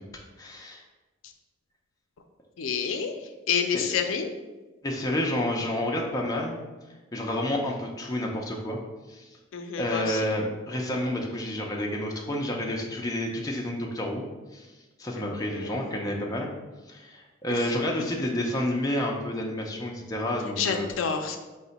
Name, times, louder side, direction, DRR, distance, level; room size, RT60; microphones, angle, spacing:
voice 1, 0.4-0.8 3.7-3.8 4.8-6.6 7.1-8.8 9.1-9.3 9.8-14.3 14.5-14.7 15.0-16.5 16.9-20.9, left 1 dB, 20° left, -1 dB, 0.4 m, -29 dB
voice 2, 2.6-4.3 9.5-10.2 15.2-15.8 17.5-17.8 20.6-21.4, left 6 dB, 80° left, 6 dB, 0.4 m, -29 dB
4.7 x 2.1 x 3.9 m, 1.2 s
head